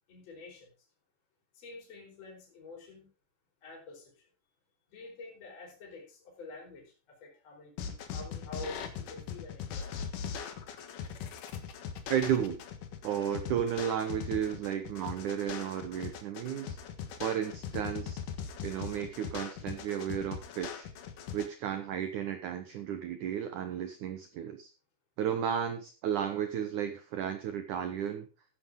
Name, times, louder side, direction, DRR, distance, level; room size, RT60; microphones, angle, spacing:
voice 1, 0.1-0.7 1.6-3.1 3.6-4.1 4.9-9.9, left 3 dB, 40° left, -1 dB, 5.4 m, -48 dB
sound 1, 7.8-21.5, left 7 dB, 60° left, 2.5 m, -40 dB
voice 2, 12.1-12.6 13.0-16.8 17.2-18.2 18.6-20.9 21.3-24.7 25.2-28.3, right 9 dB, 75° right, 8 dB, 1.8 m, -33 dB
14.0 x 10.0 x 3.7 m, 0.32 s
omnidirectional pair, 4.9 m